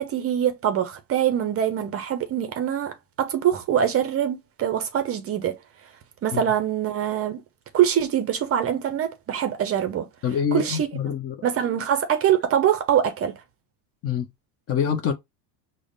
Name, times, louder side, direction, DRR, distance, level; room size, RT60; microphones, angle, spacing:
voice 1, 0.0-5.6 6.2-7.4 7.7-10.1 10.5-10.9 11.4-13.4, right 9 dB, 30° right, 0.5 m, -24 dB
voice 2, 10.2-11.4 14.0-14.3 14.7-15.1, left 7 dB, 30° left, 0.4 m, -25 dB
4.9 x 2.1 x 2.4 m
supercardioid pair, 115°, 48 cm